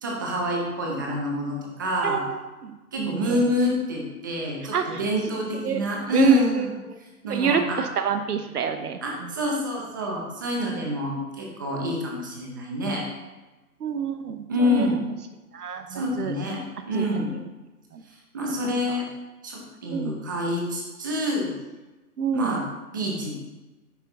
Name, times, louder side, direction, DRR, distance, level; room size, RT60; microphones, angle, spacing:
voice 1, 0.0-2.2 2.9-6.7 7.2-7.8 9.0-13.0 14.5-15.0 15.9-16.6 16.9-17.3 18.3-19.1 19.4-21.5 22.3-22.6 22.9-23.3, left 1 dB, 15° right, -1 dB, 0.6 m, -27 dB
voice 2, 2.0-3.5 4.6-5.0 5.6-5.8 6.1-7.0 7.3-9.4 13.8-15.0 15.5-16.3 16.9-17.0 17.3-17.5 17.9-18.0 18.6-19.0 19.9-20.1 22.2-22.6, right 7 dB, 75° right, 7 dB, 0.8 m, -27 dB
9.6 x 4.4 x 3.8 m, 1.1 s
hypercardioid pair, 155°, 46 cm